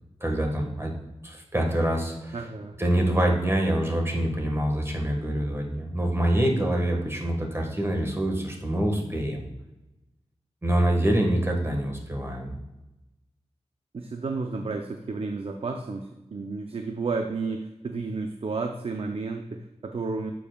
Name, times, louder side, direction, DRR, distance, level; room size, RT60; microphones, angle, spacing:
voice 1, 0.2-0.9 1.2-2.4 2.8-9.4 10.6-12.6, right 1 dB, 20° right, 1 dB, 1.5 m, -25 dB
voice 2, 2.3-2.8 13.9-20.3, right 4 dB, 55° right, 4 dB, 0.6 m, -32 dB
10.0 x 7.0 x 2.3 m, 0.98 s
wide cardioid pair, 105°, 12 cm